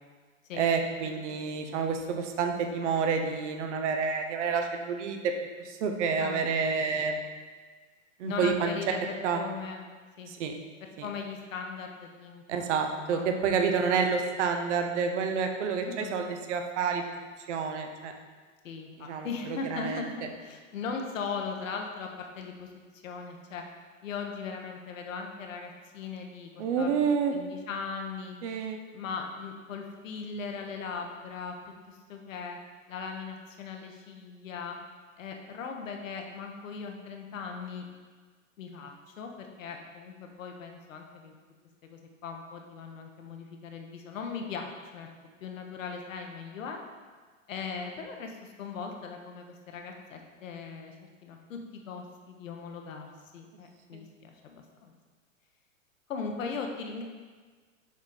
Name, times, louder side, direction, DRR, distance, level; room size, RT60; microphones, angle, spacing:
voice 1, 0.6-5.3 5.6-7.2 8.2-8.8 9.2-9.4 10.3-10.5 11.0-11.1 12.5-18.1 19.0-19.3 19.7-20.0 26.6-27.3 28.4-28.9 53.9-54.0, right 5 dB, 60° right, 5 dB, 1.0 m, -29 dB
voice 2, 6.1-6.6 8.2-9.8 10.2-10.3 10.8-13.7 15.8-16.2 18.6-22.7 23.0-23.6 24.0-28.4 28.9-31.6 31.9-32.6 32.9-34.8 35.2-37.8 38.6-41.4 41.9-45.1 45.4-46.8 47.5-51.0 51.2-53.1 53.3-54.9 56.1-57.0, left 5 dB, 70° left, 3 dB, 1.2 m, -39 dB
7.2 x 4.6 x 4.0 m, 1.4 s
hypercardioid pair, 110°, 40 cm